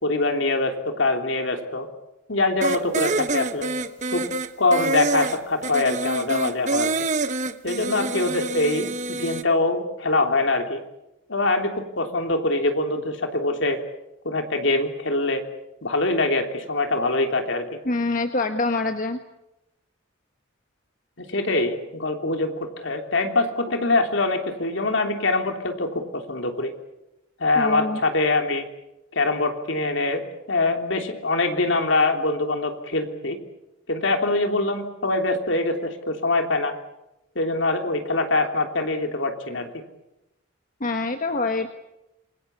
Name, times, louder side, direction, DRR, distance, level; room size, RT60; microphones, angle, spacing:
voice 1, 0.0-1.9 2.3-3.7 4.1-4.2 4.6-6.9 7.6-10.8 11.3-13.8 14.2-15.4 15.8-17.6 21.2-22.5 22.8-26.7 27.4-28.6 29.1-30.2 30.5-33.4 33.9-36.7 37.3-39.7, left 2 dB, 70° left, 5 dB, 3.3 m, -23 dB
sound 1, 2.6-9.4, right 3 dB, 35° right, 1.1 m, -26 dB
voice 2, 17.8-19.2 27.5-28.0 40.8-41.7, left 3 dB, 40° left, 7 dB, 1.3 m, -25 dB
27.0 x 22.0 x 8.5 m, 0.93 s
head